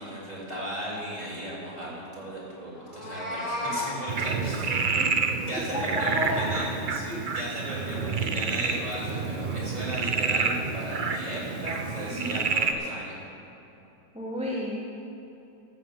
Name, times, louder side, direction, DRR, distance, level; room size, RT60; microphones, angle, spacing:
voice 1, 0.0-5.0 5.5-13.1, equal, 25° right, -7 dB, 3.5 m, -36 dB
Meow, 2.8-3.9, left 1 dB, 20° left, 2.7 m, -32 dB
Frog, 4.1-12.7, right 5 dB, 60° right, 0.5 m, -29 dB
voice 2, 5.7-6.8 7.1-7.3 12.1-12.4 14.1-14.8, equal, 5° right, -5 dB, 1.2 m, -31 dB
13.5 x 7.4 x 7.5 m, 2.9 s
omnidirectional pair, 1.8 m